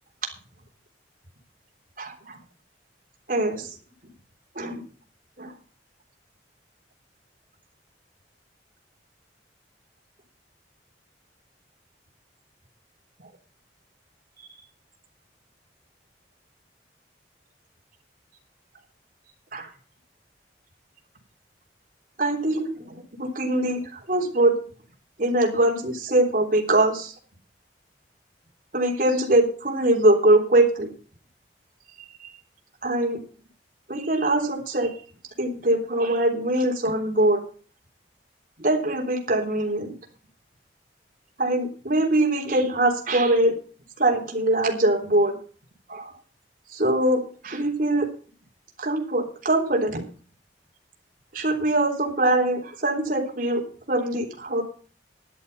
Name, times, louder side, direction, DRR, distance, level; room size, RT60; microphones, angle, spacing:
voice 1, 2.0-2.4 3.3-3.7 4.6-4.8 5.4-5.5 19.5-19.7 22.2-24.6 25.2-27.1 28.7-30.9 32.8-33.2 33.9-34.9 35.4-37.4 38.6-39.9 41.4-43.6 44.0-45.4 45.9-46.1 46.7-48.1 48.8-50.0 51.3-54.6, right 1 dB, 50° right, 1 dB, 3.5 m, -22 dB
11.5 x 11.5 x 5.5 m, 0.39 s
head